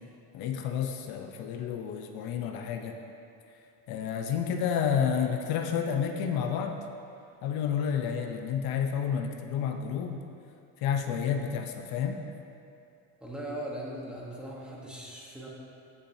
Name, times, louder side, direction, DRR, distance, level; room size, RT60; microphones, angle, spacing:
voice 1, 0.3-3.0 3.9-6.8 7.4-10.2 10.8-12.2, left 7 dB, 80° left, 5 dB, 0.8 m, -30 dB
voice 2, 13.2-15.5, right 1 dB, 5° right, -5 dB, 1.2 m, -39 dB
15.0 x 7.4 x 2.8 m, 2.5 s
cardioid pair, 170°, 36 cm